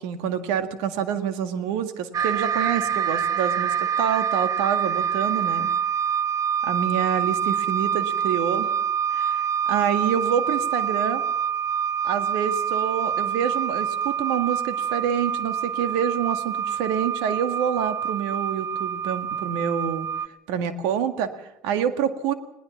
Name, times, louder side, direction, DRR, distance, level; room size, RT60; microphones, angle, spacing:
voice 1, 0.0-5.7 6.6-8.8 9.1-11.2 12.0-20.1 20.5-22.3, right 8 dB, 75° right, 9 dB, 1.8 m, -27 dB
sound 1, 2.1-20.3, right 8 dB, 45° right, 1.0 m, -26 dB
21.0 x 18.0 x 7.2 m, 0.86 s
hypercardioid pair, 65°, 8 cm